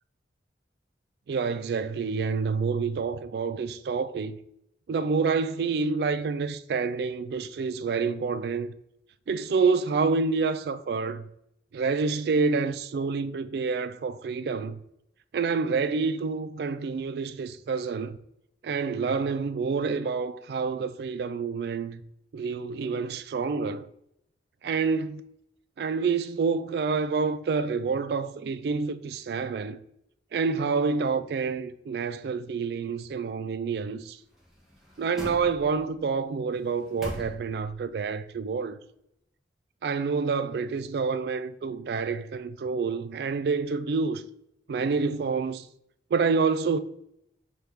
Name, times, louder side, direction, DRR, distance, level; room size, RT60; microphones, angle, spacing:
voice 1, 1.3-4.3 4.9-8.7 9.3-11.3 11.7-14.8 15.3-18.2 18.6-22.0 22.3-23.9 24.6-25.2 25.8-29.8 30.3-34.2 35.0-38.8 39.8-44.2 44.7-45.7 46.1-46.8, right 4 dB, 65° right, 0.3 m, -28 dB
sound 1, 34.3-36.0 36.5-37.8 38.2-38.3, equal, ahead, 0.7 m, -41 dB
5.9 x 2.4 x 3.3 m
head